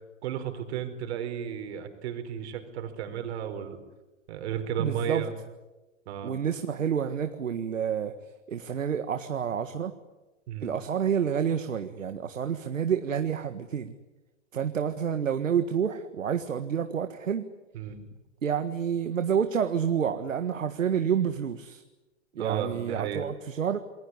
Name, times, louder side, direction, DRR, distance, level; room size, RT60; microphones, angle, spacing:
voice 1, 0.2-3.8 4.3-5.3 6.0-6.3 10.5-10.7 17.7-18.0 22.4-23.2, right 9 dB, 55° right, 7 dB, 5.1 m, -33 dB
voice 2, 4.8-5.2 6.2-8.1 8.5-9.9 10.6-13.9 14.5-17.5 18.4-21.8 22.4-23.8, right 8 dB, 85° right, 8 dB, 1.8 m, -29 dB
28.5 x 21.0 x 9.8 m, 1.1 s
hypercardioid pair, 120°, 38 cm